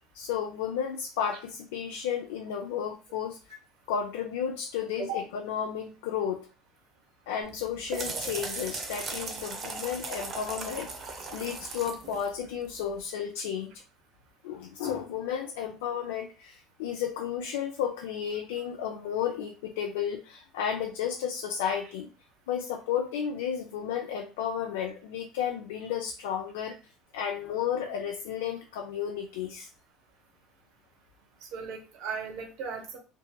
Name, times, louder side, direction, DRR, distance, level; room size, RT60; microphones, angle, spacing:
voice 1, 0.1-3.4 3.9-6.5 7.3-13.8 14.4-22.1 22.5-26.8 27.1-29.7, left 8 dB, 90° left, 2 dB, 0.3 m, -33 dB
sound 1, 7.4-13.0, right 3 dB, 45° right, 0.6 m, -38 dB
voice 2, 31.4-33.0, right 4 dB, 75° right, 3 dB, 0.8 m, -36 dB
2.8 x 2.5 x 2.2 m, 0.34 s
supercardioid pair, 95°, 0 cm